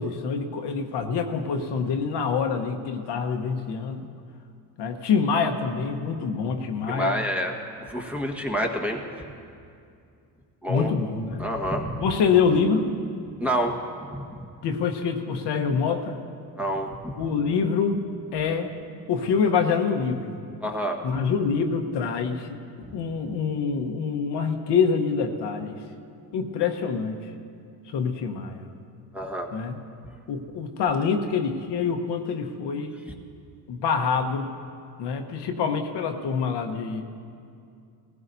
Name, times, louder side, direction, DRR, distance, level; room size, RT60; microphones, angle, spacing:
voice 1, 0.0-4.1 4.8-7.2 10.7-11.4 12.0-12.9 14.6-16.2 17.2-18.1 18.3-18.7 19.1-20.3 21.0-25.8 26.3-27.3 27.9-28.6 29.5-29.8 30.3-32.9 33.7-34.5 35.0-37.0, left 5 dB, 65° left, 5 dB, 1.2 m, -26 dB
voice 2, 6.9-7.6 7.8-9.0 10.6-10.9 11.4-12.0 13.4-13.8 14.1-14.4 16.6-17.0 20.6-21.0 29.1-29.5, equal, 5° right, 0 dB, 1.4 m, -27 dB
19.5 x 15.5 x 2.7 m, 2.4 s
supercardioid pair, 90°, 45 cm